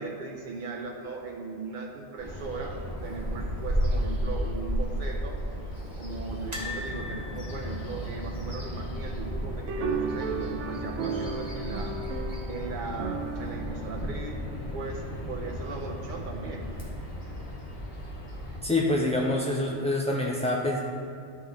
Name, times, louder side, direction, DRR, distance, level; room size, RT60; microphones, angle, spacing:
voice 1, 0.0-2.8 3.0-5.4 6.0-11.9 12.5-14.4 14.7-16.7, right 4 dB, 50° right, 0 dB, 0.7 m, -38 dB
Bird vocalization bird call bird song, 2.2-18.6, equal, 45° left, 2.0 m, -34 dB
sound 1, 6.5-9.6 9.8-10.0 10.3-10.4 11.6-12.2 12.7-12.8, left 2 dB, 25° right, 1.6 m, -41 dB
sound 2, 9.7-15.2, right 4 dB, 80° right, 0.9 m, -35 dB
voice 2, 18.6-20.8, left 2 dB, 10° left, -3 dB, 0.3 m, -26 dB
12.0 x 5.7 x 3.6 m, 2.5 s
omnidirectional pair, 1.2 m